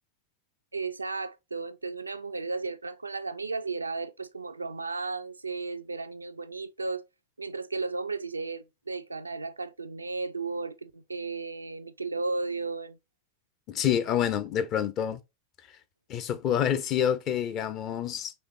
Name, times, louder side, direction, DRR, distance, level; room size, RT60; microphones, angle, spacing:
voice 1, 0.7-7.0 7.4-13.0, right 3 dB, 80° right, 0.4 m, -34 dB
voice 2, 13.7-15.2 16.1-18.3, left 9 dB, 35° left, 0.7 m, -27 dB
5.3 x 3.6 x 2.3 m
figure-of-eight pair, 90°, 0 cm